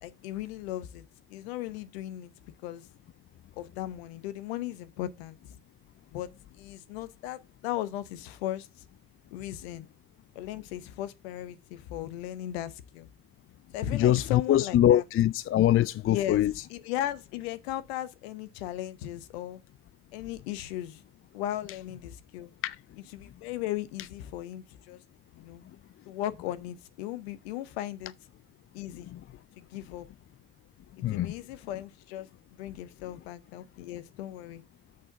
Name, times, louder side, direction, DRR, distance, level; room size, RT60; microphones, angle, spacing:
voice 1, 0.0-1.0 1.3-2.3 2.6-2.9 3.6-5.6 6.1-8.7 9.3-9.9 10.3-13.1 13.7-15.0 16.1-16.4 16.7-19.6 20.1-21.0 21.3-22.5 23.1-25.0 25.3-25.6 26.1-28.1 28.7-29.1 29.6-30.1 31.1-34.6, left 13 dB, 85° left, 0.8 m, -37 dB
voice 2, 13.9-16.5 22.6-22.8 29.1-29.2 31.0-31.3, left 12 dB, 45° left, 0.4 m, -23 dB
6.6 x 5.6 x 6.8 m
hypercardioid pair, 45°, 31 cm